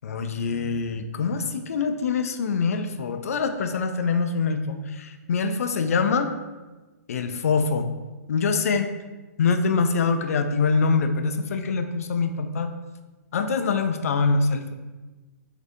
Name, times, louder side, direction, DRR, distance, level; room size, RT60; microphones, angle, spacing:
voice 1, 0.0-6.3 7.1-7.9 8.3-8.9 9.4-12.7 13.3-14.7, left 4 dB, 60° left, 7 dB, 0.4 m, -24 dB
3.8 x 2.6 x 3.4 m, 1.2 s
hypercardioid pair, 175°, 9 cm